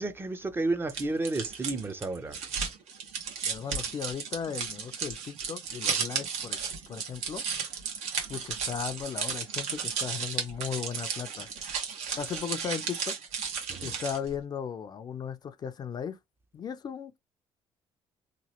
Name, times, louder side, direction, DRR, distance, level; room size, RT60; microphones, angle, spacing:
voice 1, 0.0-2.4 13.7-14.0, right 2 dB, 20° right, 0.5 m, -32 dB
sound 1, 0.9-14.3, right 6 dB, 80° right, 1.0 m, -34 dB
voice 2, 3.4-6.6 6.9-7.4 8.3-11.7 12.2-13.1 13.8-16.2 16.5-17.2, left 7 dB, 40° left, 0.4 m, -36 dB
2.9 x 2.3 x 2.9 m
cardioid pair, 105°, 11 cm